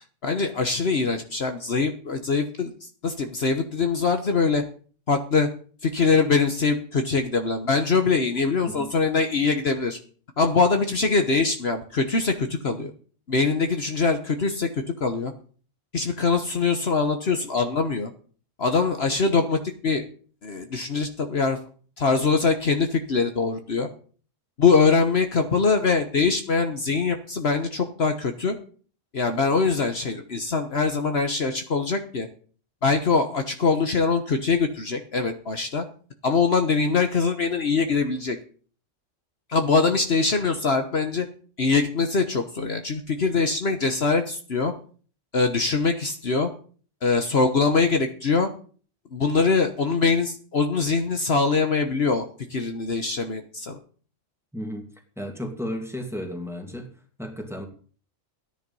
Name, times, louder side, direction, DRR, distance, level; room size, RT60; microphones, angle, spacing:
voice 1, 0.2-4.6 5.1-5.5 5.8-10.0 10.4-12.9 13.3-14.7 15.0-15.3 15.9-18.1 18.6-20.0 20.4-21.6 22.0-23.9 24.6-28.6 29.1-32.3 32.8-35.8 36.2-38.4 39.5-41.3 41.6-44.7 45.3-46.5 47.0-48.5 49.1-53.8, left 4 dB, 55° left, 6 dB, 1.4 m, -23 dB
voice 2, 54.5-54.9 55.2-56.9 57.2-57.7, equal, ahead, 3 dB, 2.5 m, -33 dB
14.0 x 10.0 x 5.5 m, 0.42 s
omnidirectional pair, 1.3 m